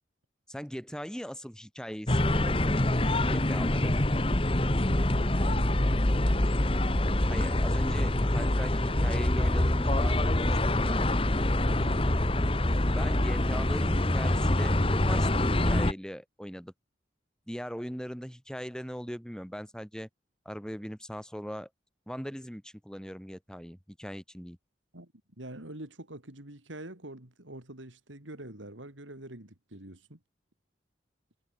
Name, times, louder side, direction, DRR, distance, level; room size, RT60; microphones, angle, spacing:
voice 1, 0.5-2.9 3.3-3.9 7.3-11.0 12.9-16.7 17.5-20.1 20.5-21.7 22.1-24.6, equal, 5° left, 5.6 m, -39 dB
sound 1, 2.1-15.9, left 1 dB, 30° left, 1.3 m, -25 dB
voice 2, 4.9-6.2 11.7-12.0 24.9-25.1 25.4-30.2, right 1 dB, 90° right, 3.8 m, -45 dB
head